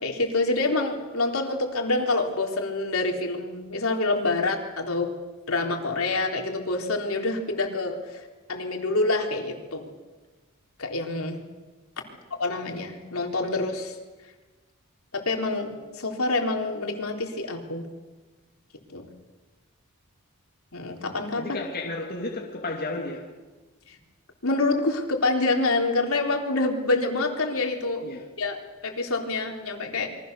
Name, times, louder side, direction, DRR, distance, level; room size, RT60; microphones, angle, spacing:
voice 1, 0.0-5.1 5.5-8.2 8.5-9.9 10.8-11.4 12.4-14.0 15.1-17.9 18.9-19.1 20.7-21.4 23.9-24.0 24.4-28.1 28.4-28.6 28.8-30.1, left 2 dB, 75° left, 3.7 m, -26 dB
voice 2, 21.4-23.4 28.0-28.3, left 2 dB, 45° left, 2.6 m, -33 dB
28.0 x 23.5 x 6.9 m
head